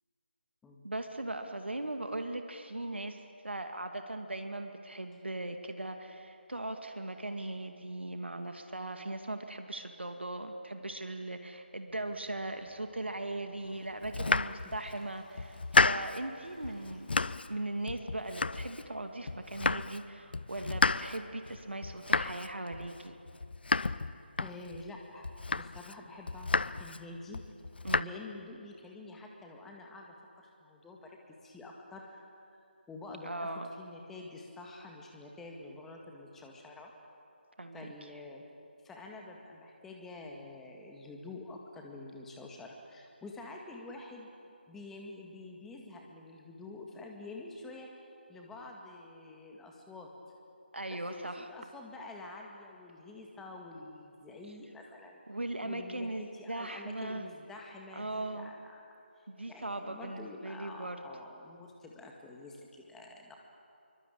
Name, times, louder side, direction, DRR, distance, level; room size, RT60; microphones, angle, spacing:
voice 1, 0.8-3.2 3.4-23.2 27.8-28.1 33.2-33.7 37.6-37.9 50.7-51.5 55.3-57.3 57.9-58.6 59.3-61.0, right 2 dB, 75° right, 6 dB, 2.3 m, -39 dB
sound 1, 11.9-17.2, right 1 dB, 20° right, 7.0 m, -65 dB
Toilet flush, 13.5-17.9, left 1 dB, 40° left, 6.5 m, -64 dB
Domestic sounds home sounds, 14.0-15.0 15.4-16.3 16.6-17.6 17.9-19.0 19.3-20.1 20.3-24.9 25.2-25.9 26.3-27.0 27.3-28.0, left 3 dB, 60° left, 0.6 m, -31 dB
voice 2, 24.4-27.4 28.0-32.2 32.9-33.5 33.8-36.9 37.7-38.4 38.8-44.3 44.7-50.1 50.9-55.2 55.6-58.8 59.2-63.4, left 2 dB, 5° left, 0 dB, 2.0 m, -48 dB
26.0 x 24.5 x 8.7 m, 2.7 s
figure-of-eight pair, 155°, 6 cm